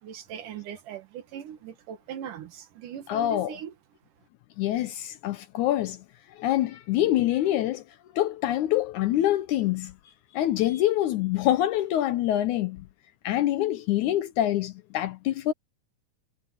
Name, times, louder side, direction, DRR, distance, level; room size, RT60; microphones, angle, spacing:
voice 1, 0.0-3.7, right 9 dB, 70° right, 3.1 m, -40 dB
voice 2, 3.1-3.6 4.6-7.8 8.2-10.0 10.3-12.9 13.2-15.5, left 13 dB, 75° left, 2.0 m, -25 dB
omnidirectional pair, 3.9 m